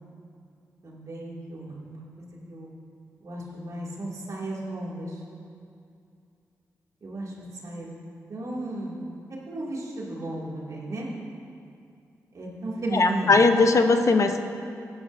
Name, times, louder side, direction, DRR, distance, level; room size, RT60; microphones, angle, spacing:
voice 1, 0.8-2.7 3.2-5.2 7.0-7.3 7.6-7.9 8.3-9.1 9.5-11.1 12.3-13.5, right 1 dB, 60° right, -4 dB, 2.5 m, -34 dB
voice 2, 12.9-14.4, left 3 dB, 55° left, 6 dB, 0.9 m, -19 dB
16.5 x 11.5 x 2.7 m, 2.5 s
cardioid pair, 50°, 6 cm